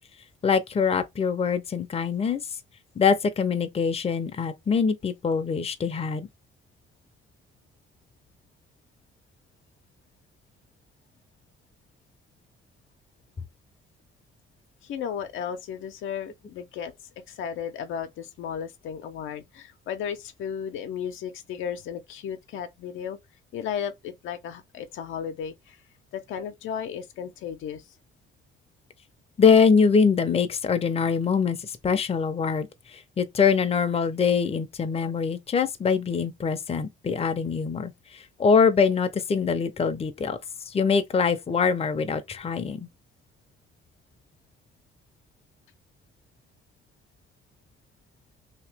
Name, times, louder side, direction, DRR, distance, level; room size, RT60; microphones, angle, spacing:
voice 1, 0.4-2.4 3.0-6.3 29.4-40.4 40.7-42.9, left 5 dB, 30° left, 0.6 m, -23 dB
voice 2, 14.8-16.9 17.3-23.2 23.5-25.8 26.1-27.9, left 8 dB, 80° left, 0.7 m, -34 dB
2.9 x 2.9 x 3.3 m
cardioid pair, 90°, 20 cm